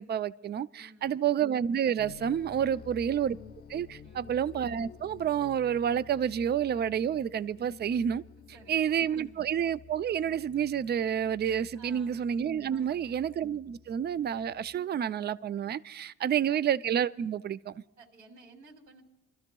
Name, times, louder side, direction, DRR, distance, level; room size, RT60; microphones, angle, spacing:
voice 1, 0.0-3.4 3.7-8.2 8.7-17.8, right 9 dB, 35° right, 0.4 m, -29 dB
voice 2, 0.7-1.3 2.6-3.0 4.0-4.4 8.5-9.4 11.7-12.2 12.7-13.2 16.2-16.6 18.0-19.0, right 3 dB, 75° right, 2.9 m, -56 dB
sound 1, 2.0-14.8, left 6 dB, 30° left, 0.6 m, -51 dB
27.0 x 13.0 x 2.3 m
cardioid pair, 90°, 30 cm